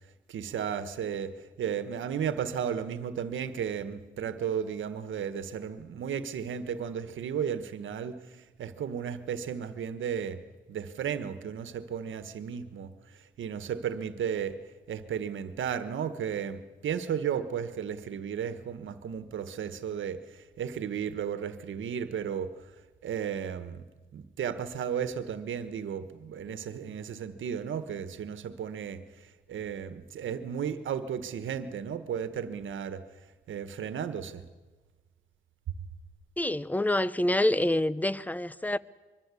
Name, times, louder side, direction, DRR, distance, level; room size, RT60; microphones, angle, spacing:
voice 1, 0.3-10.4 10.7-14.6 14.9-22.5 23.0-23.9 24.1-33.0 33.5-34.4, right 8 dB, 85° right, 1.4 m, -34 dB
voice 2, 36.4-38.8, left 1 dB, 10° left, 0.8 m, -27 dB
24.0 x 22.5 x 8.4 m
cardioid pair, 65°, 20 cm